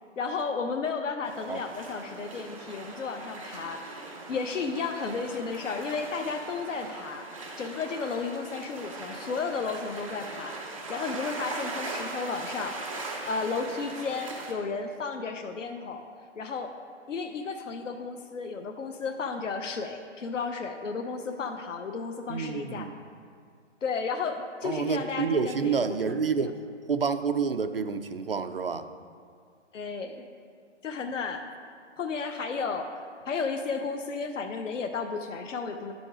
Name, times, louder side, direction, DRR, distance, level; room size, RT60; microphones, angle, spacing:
voice 1, 0.2-4.0 4.3-7.3 7.6-12.8 13.3-16.1 16.4-16.7 17.1-22.9 23.8-26.4 29.7-30.2 30.8-31.4 32.0-32.9 33.3-35.9, left 4 dB, 85° left, 5 dB, 0.8 m, -33 dB
sound 1, 1.2-14.5, right 2 dB, 30° right, 0.8 m, -40 dB
voice 2, 22.3-22.9 24.6-26.5 26.9-28.9, right 5 dB, 50° right, 9 dB, 0.5 m, -28 dB
11.5 x 5.2 x 4.9 m, 2.1 s
hypercardioid pair, 180°, 37 cm